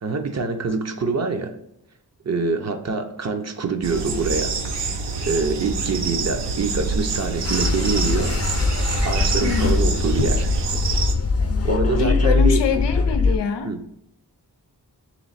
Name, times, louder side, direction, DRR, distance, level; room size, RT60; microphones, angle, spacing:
voice 1, 0.0-1.5 2.2-4.6 5.2-8.4 9.0-10.5 11.6-12.6 13.6-13.8, right 4 dB, 40° right, 6 dB, 0.6 m, -25 dB
sound 1, 3.8-11.1, right 4 dB, 80° right, 0.6 m, -26 dB
sound 2, 7.4-13.4, left 4 dB, 35° left, 0.5 m, -22 dB
voice 2, 9.4-9.8 12.0-13.7, left 6 dB, 85° left, 8 dB, 0.5 m, -24 dB
3.4 x 3.1 x 4.0 m, 0.78 s
wide cardioid pair, 65°, 41 cm